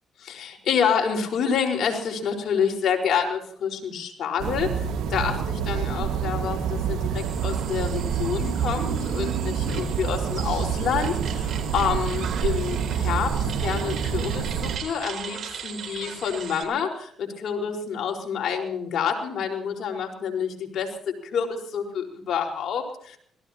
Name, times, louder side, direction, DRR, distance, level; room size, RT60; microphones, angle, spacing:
voice 1, 0.3-20.9 21.3-23.2, left 7 dB, 70° left, 2 dB, 4.5 m, -28 dB
sound 1, 4.4-14.8, right 7 dB, 85° right, 1.7 m, -27 dB
sound 2, 7.1-16.6, right 7 dB, 60° right, 4.5 m, -38 dB
26.5 x 18.5 x 2.9 m, 0.62 s
cardioid pair, 90°, 0 cm